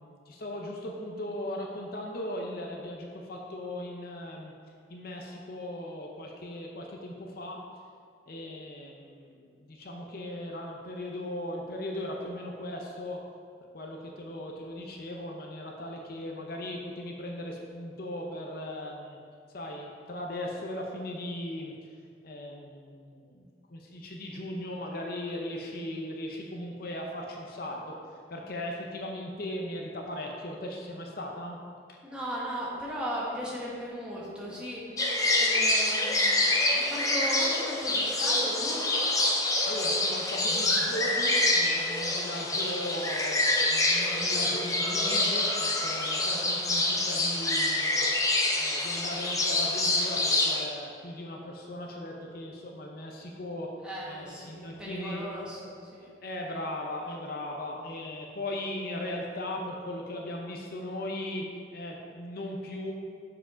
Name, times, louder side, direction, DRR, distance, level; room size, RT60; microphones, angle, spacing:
voice 1, 0.0-4.5 4.9-7.6 8.3-13.2 13.7-19.2 19.5-21.7 22.2-28.0 28.3-31.6 31.9-32.0 39.6-48.1 48.6-53.7 54.0-55.2 56.2-61.4 61.7-62.9, left 1 dB, 55° left, 0 dB, 0.7 m, -38 dB
voice 2, 32.0-35.1 35.3-36.5 36.8-38.8 48.8-49.1 53.8-56.1, equal, 5° right, -6 dB, 1.5 m, -37 dB
sound 1, 35.0-50.6, left 2 dB, 20° left, 0.7 m, -26 dB
7.1 x 4.9 x 5.0 m, 2.2 s
head